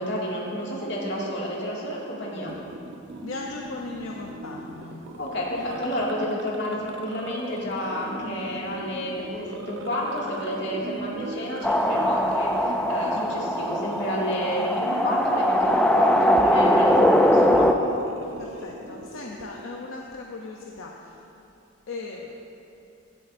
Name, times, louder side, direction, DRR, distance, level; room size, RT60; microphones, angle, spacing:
voice 1, 0.0-2.6 5.2-17.7, equal, 60° left, -5 dB, 2.2 m, -30 dB
sound 1, 2.5-19.7, right 1 dB, 65° right, 0.7 m, -40 dB
voice 2, 3.2-5.0 18.4-20.9 21.9-22.3, left 3 dB, 85° left, -1 dB, 0.7 m, -37 dB
sound 2, 11.6-17.7, equal, 5° left, 0.3 m, -21 dB
17.0 x 8.3 x 2.6 m, 2.8 s
head